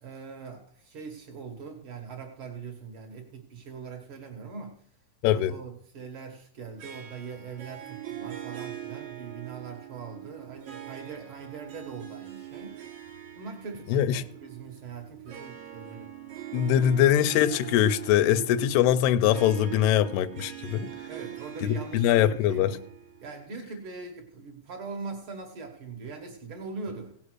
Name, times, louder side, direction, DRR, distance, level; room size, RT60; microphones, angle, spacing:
voice 1, 0.0-4.8 5.3-12.8 13.4-16.1 21.1-22.8 23.2-27.1, right 5 dB, 85° right, 1.1 m, -41 dB
Harp, 6.8-23.5, right 10 dB, 55° right, 2.9 m, -43 dB
voice 2, 13.9-14.2 16.5-20.9 21.6-22.8, left 11 dB, 90° left, 2.6 m, -23 dB
16.5 x 5.7 x 6.2 m
omnidirectional pair, 4.5 m